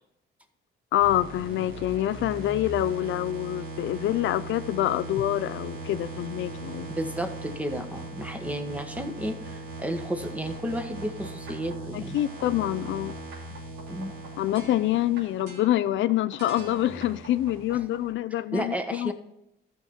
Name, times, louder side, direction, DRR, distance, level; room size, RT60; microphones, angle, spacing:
voice 1, 0.9-6.9 11.9-13.1 14.4-19.1, left 13 dB, 75° left, 14 dB, 0.4 m, -26 dB
sound 1, 1.0-18.1, right 3 dB, 85° right, 3.1 m, -39 dB
voice 2, 7.0-12.2 13.9-14.1 18.5-19.1, equal, 5° right, 6 dB, 1.3 m, -32 dB
13.5 x 6.2 x 4.3 m, 0.86 s
cardioid pair, 90°, 20 cm